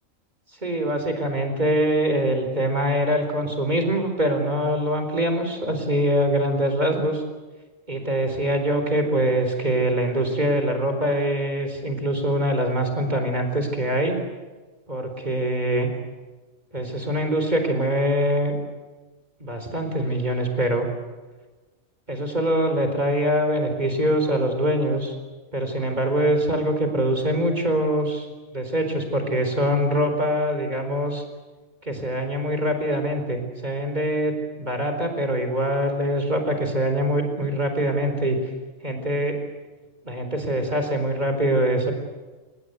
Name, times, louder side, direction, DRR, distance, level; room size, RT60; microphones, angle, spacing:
voice 1, 0.6-7.2 7.9-14.2 14.9-15.9 16.7-18.5 19.4-20.9 22.1-25.1 25.5-28.3 28.5-31.2 31.8-38.4 38.8-39.4 40.0-41.9, right 1 dB, 30° right, 5 dB, 4.4 m, -23 dB
26.0 x 21.0 x 8.2 m, 1.3 s
omnidirectional pair, 1.4 m